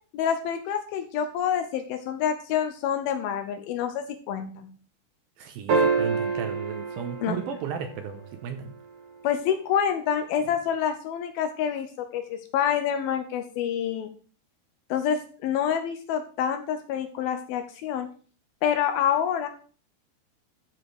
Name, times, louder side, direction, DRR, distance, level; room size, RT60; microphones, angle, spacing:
voice 1, 0.1-4.7 7.2-7.4 9.2-14.1 14.9-18.1 18.6-19.5, left 8 dB, 75° left, 7 dB, 2.3 m, -27 dB
voice 2, 5.4-8.7, right 7 dB, 75° right, 7 dB, 2.4 m, -34 dB
sound 1, 5.7-8.2 10.4-10.5, right 4 dB, 55° right, 1.7 m, -27 dB
13.0 x 5.0 x 4.7 m, 0.42 s
omnidirectional pair, 4.8 m